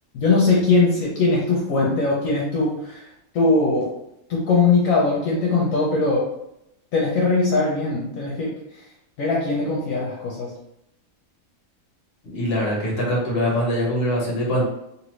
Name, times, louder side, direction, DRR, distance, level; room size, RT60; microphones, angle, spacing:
voice 1, 0.1-3.0 3.3-3.9 4.3-6.3 6.9-8.5 9.2-10.5, left 3 dB, 70° left, -4 dB, 1.1 m, -20 dB
voice 2, 12.3-14.6, equal, 50° left, -3 dB, 1.2 m, -23 dB
2.7 x 2.6 x 3.1 m, 0.82 s
omnidirectional pair, 1.5 m